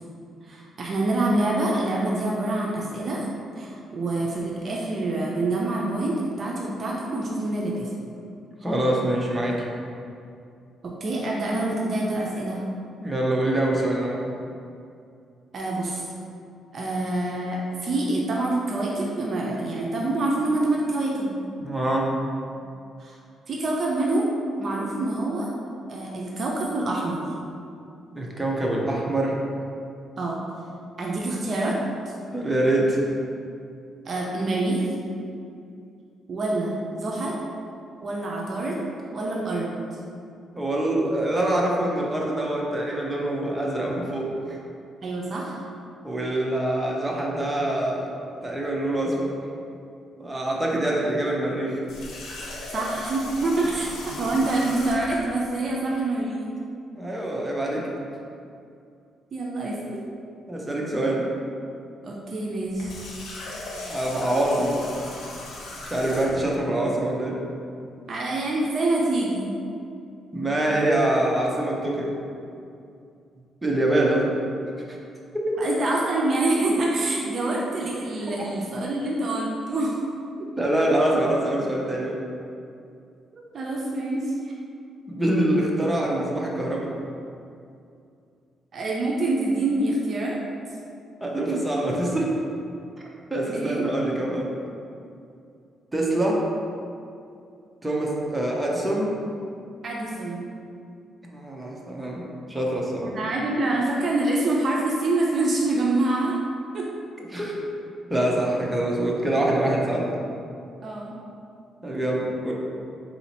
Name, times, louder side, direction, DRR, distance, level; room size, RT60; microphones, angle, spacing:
voice 1, 0.4-3.3 3.6-7.9 10.8-12.6 15.5-16.0 16.7-21.4 23.0-23.2 23.5-24.3 24.6-25.5 25.9-27.3 30.2-30.4 31.0-31.8 32.1-32.2 34.0-34.9 36.3-37.4 38.0-39.8 45.0-45.6 52.7-56.5 59.3-59.8 62.0-63.0 66.6-66.7 68.1-69.5 75.6-80.0 83.5-84.5 88.7-90.4 93.5-93.8 99.8-100.4 103.0-106.4 106.7-106.9 110.8-111.1, right 2 dB, 50° right, -3 dB, 0.6 m, -26 dB
voice 2, 8.6-9.6 13.0-14.3 21.6-22.1 28.1-29.4 32.3-33.0 40.5-44.6 46.0-48.1 48.4-49.3 50.2-51.8 56.9-57.9 60.5-61.3 63.9-64.8 65.8-67.4 70.3-72.1 73.6-74.4 74.9-75.0 75.3-75.7 80.6-82.2 85.1-86.9 91.2-92.3 93.3-94.5 95.9-96.4 97.8-99.2 101.2-102.2 102.5-103.1 107.3-107.6 108.1-110.1 111.8-112.5, right 1 dB, 10° right, -3 dB, 0.8 m, -25 dB
Water tap faucet, 51.9-55.3 62.7-66.5, left 1 dB, 80° left, 0.9 m, -37 dB
4.0 x 2.8 x 4.2 m, 2.5 s
cardioid pair, 90°, 0 cm